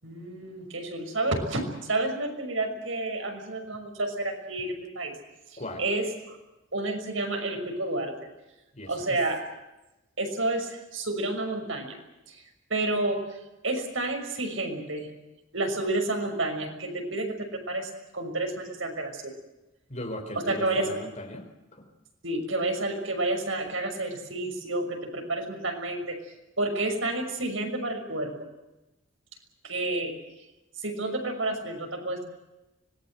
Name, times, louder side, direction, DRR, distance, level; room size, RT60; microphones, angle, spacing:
voice 1, 0.0-5.1 5.8-6.4 6.7-8.1 8.9-9.4 10.2-12.0 12.3-12.4 12.7-13.4 13.6-15.1 15.5-19.4 20.5-20.9 22.2-26.2 26.6-28.5 29.6-30.1 30.8-32.2, right 2 dB, 80° right, 4 dB, 6.3 m, -30 dB
voice 2, 8.7-9.2 19.9-21.9, left 1 dB, 35° left, 5 dB, 4.7 m, -38 dB
25.5 x 20.5 x 8.0 m, 0.99 s
head